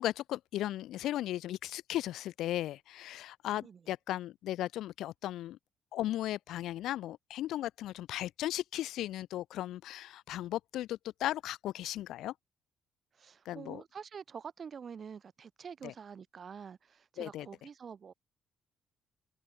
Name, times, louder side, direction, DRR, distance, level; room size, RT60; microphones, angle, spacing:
voice 1, 0.0-5.6 5.9-12.3 13.5-13.8 15.8-15.9 17.2-17.5, left 13 dB, 85° left, 3.5 m, -36 dB
voice 2, 13.2-18.1, right 6 dB, 50° right, 3.8 m, -47 dB
open air
cardioid pair, 90°, 0 cm